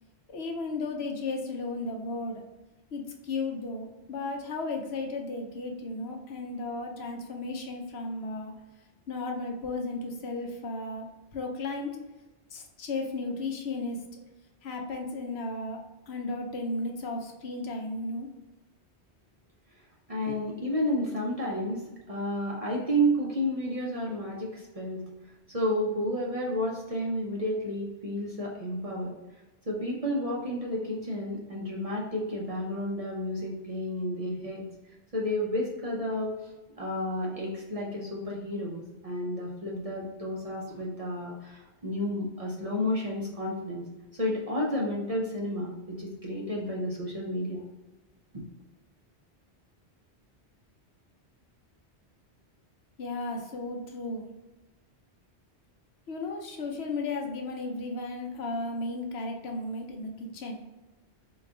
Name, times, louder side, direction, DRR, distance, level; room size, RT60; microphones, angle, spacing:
voice 1, 0.3-2.4 2.9-8.5 9.1-12.0 12.5-14.0 14.6-15.8 16.1-18.3 53.0-54.3 56.1-60.6, left 2 dB, 70° left, 2 dB, 0.9 m, -34 dB
voice 2, 20.1-21.8 22.1-25.0 25.5-29.1 29.7-34.6 35.1-36.5 36.8-43.9 44.1-47.6 48.3-48.4, equal, 40° right, -3 dB, 0.6 m, -31 dB
3.9 x 2.3 x 3.5 m, 1.1 s
omnidirectional pair, 1.1 m